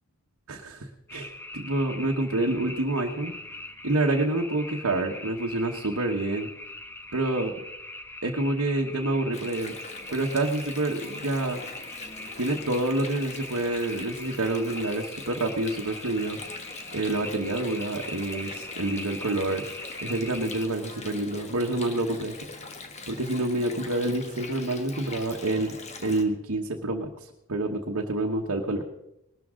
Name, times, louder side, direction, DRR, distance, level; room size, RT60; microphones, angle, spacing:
voice 1, 0.5-3.3 3.8-6.5 7.1-7.5 8.2-9.7 10.1-11.6 12.4-16.4 16.9-19.6 20.0-22.3 23.1-25.7 26.0-28.8, right 2 dB, 85° right, 0 dB, 1.2 m, -28 dB
sound 1, 1.1-20.7, left 1 dB, 10° left, 0.9 m, -41 dB
Water, 9.3-26.2, left 3 dB, 30° left, 1.2 m, -42 dB
20.0 x 12.5 x 3.8 m, 0.85 s
head